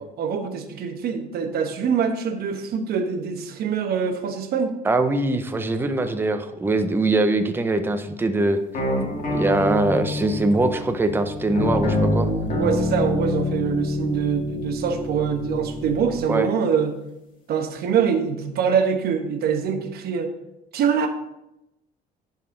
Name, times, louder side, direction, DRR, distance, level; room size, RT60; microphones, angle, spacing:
voice 1, 0.2-4.8 12.6-16.9 17.5-20.3 20.7-21.1, right 6 dB, 65° right, 6 dB, 1.0 m, -24 dB
voice 2, 4.8-8.6 9.3-12.3 16.3-16.5, right 2 dB, 15° right, 8 dB, 0.6 m, -22 dB
sound 1, 8.7-16.2, left 1 dB, 50° left, 1.8 m, -26 dB
11.0 x 4.1 x 3.8 m, 0.89 s
cardioid pair, 110°, 17 cm